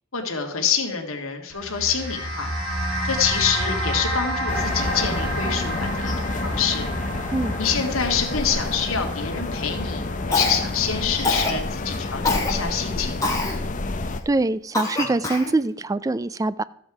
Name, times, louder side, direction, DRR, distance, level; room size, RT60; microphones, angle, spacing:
voice 1, 0.1-2.5 3.0-6.9 7.6-13.4, left 7 dB, 75° left, 3 dB, 2.1 m, -26 dB
sound 1, 1.5-12.0, equal, 65° right, 3.8 m, -30 dB
sound 2, 4.5-14.2, left 2 dB, 40° left, 0.7 m, -29 dB
Cough, 10.3-10.8 11.2-11.6 12.2-12.5 13.2-13.6 14.1-14.2 14.7-15.5, left 3 dB, 15° left, 2.4 m, -24 dB
voice 2, 14.3-16.6, right 2 dB, 15° right, 17 dB, 0.3 m, -23 dB
14.0 x 7.9 x 4.9 m, 0.74 s
head